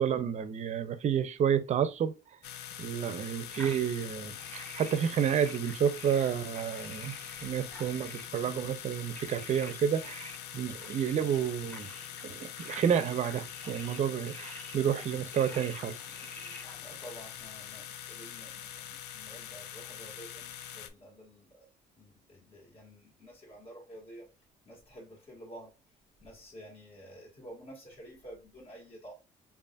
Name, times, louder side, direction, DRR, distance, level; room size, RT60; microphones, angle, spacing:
voice 1, 0.0-2.1 2.8-7.1 7.4-11.9 12.2-16.0, right 8 dB, 45° right, 0.5 m, -30 dB
sound 1, 2.4-20.9, left 10 dB, 80° left, 0.5 m, -44 dB
sound 2, 3.5-17.0, equal, 10° left, 0.9 m, -49 dB
voice 2, 16.8-21.7 22.0-24.3 24.7-25.7 26.2-29.1, equal, 35° left, 1.8 m, -50 dB
5.1 x 2.5 x 2.3 m
cardioid pair, 110°, 17 cm